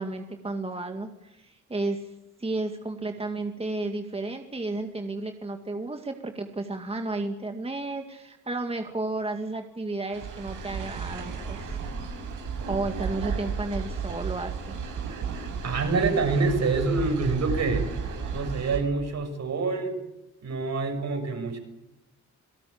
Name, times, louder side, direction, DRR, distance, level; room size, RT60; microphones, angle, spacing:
voice 1, 0.0-2.1 2.4-12.2 12.7-14.8, right 2 dB, 20° right, 5 dB, 2.1 m, -33 dB
sound 1, 10.1-18.8, right 6 dB, 85° right, 7.1 m, -33 dB
voice 2, 15.6-17.8 18.3-20.0 20.4-21.6, right 3 dB, 60° right, 6 dB, 6.6 m, -26 dB
27.5 x 18.0 x 8.7 m, 0.90 s
cardioid pair, 90°, 30 cm